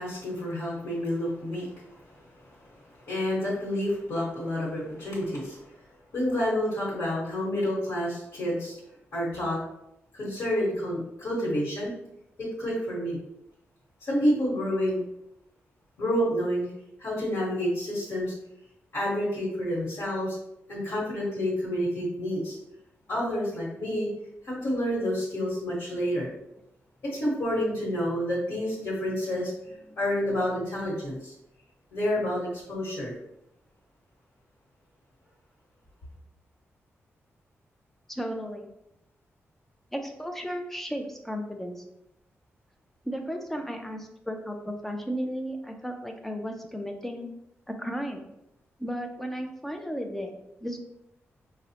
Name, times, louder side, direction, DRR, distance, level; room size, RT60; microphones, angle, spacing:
voice 1, 0.0-5.7 6.1-8.8 9.1-9.6 10.1-11.9 12.4-13.2 14.0-15.0 16.0-16.7 17.0-18.3 18.9-20.4 20.7-22.6 23.1-24.1 24.4-26.3 27.0-31.3 31.9-33.1, equal, 60° left, -6 dB, 1.2 m, -29 dB
voice 2, 38.1-38.7 39.9-41.8 43.0-47.3 47.7-48.2 48.8-50.8, equal, 5° left, 4 dB, 0.3 m, -34 dB
4.8 x 2.0 x 2.8 m, 0.83 s
wide cardioid pair, 175°, 5 cm